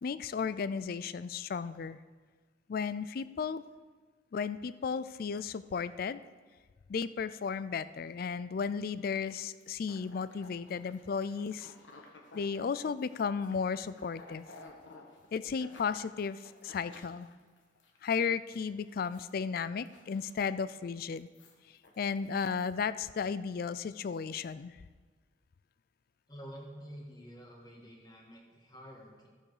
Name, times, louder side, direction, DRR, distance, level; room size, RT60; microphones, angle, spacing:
voice 1, 0.0-2.0 2.7-3.6 4.3-6.2 6.9-11.7 12.3-14.4 15.3-17.3 18.0-21.3 22.0-24.7, left 6 dB, 50° left, 15 dB, 0.3 m, -34 dB
sound 1, 9.0-18.0 18.3-18.6 18.8-19.4 19.7-20.6 21.0-22.7, left 2 dB, 80° left, 1.4 m, -56 dB
voice 2, 26.3-29.3, equal, 20° left, -1 dB, 1.8 m, -49 dB
14.5 x 7.4 x 4.9 m, 1.5 s
head